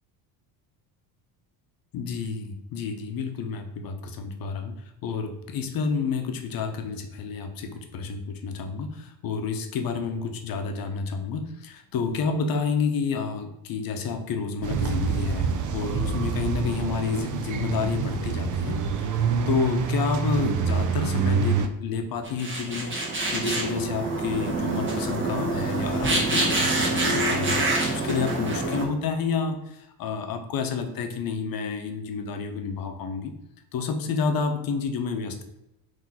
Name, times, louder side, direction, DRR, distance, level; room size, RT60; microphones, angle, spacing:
voice 1, 1.9-4.8 5.0-22.9 23.3-27.6 27.9-33.3 33.7-35.4, left 5 dB, 50° left, 6 dB, 0.8 m, -29 dB
sound 1, 14.6-21.7, right 5 dB, 45° right, 0.5 m, -26 dB
sound 2, 22.2-28.8, right 2 dB, 25° right, 1.4 m, -26 dB
3.8 x 2.9 x 4.2 m, 0.86 s
cardioid pair, 105°, 45 cm